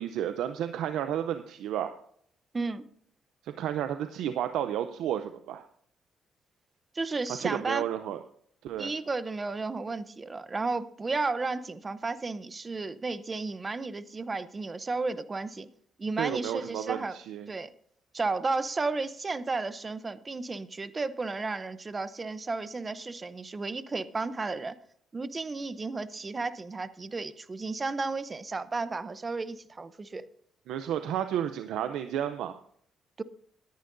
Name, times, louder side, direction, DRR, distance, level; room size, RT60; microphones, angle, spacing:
voice 1, 0.0-2.0 3.4-5.6 7.4-8.2 8.6-8.9 16.2-17.5 30.7-32.6, right 10 dB, 85° right, 0.6 m, -32 dB
voice 2, 2.5-2.9 6.9-7.8 8.8-15.7 16.0-17.2 17.5-17.7 18.1-24.8 25.1-30.2 33.2-33.3, right 3 dB, 30° right, 0.7 m, -33 dB
19.0 x 10.5 x 2.7 m
cardioid pair, 90°, 0 cm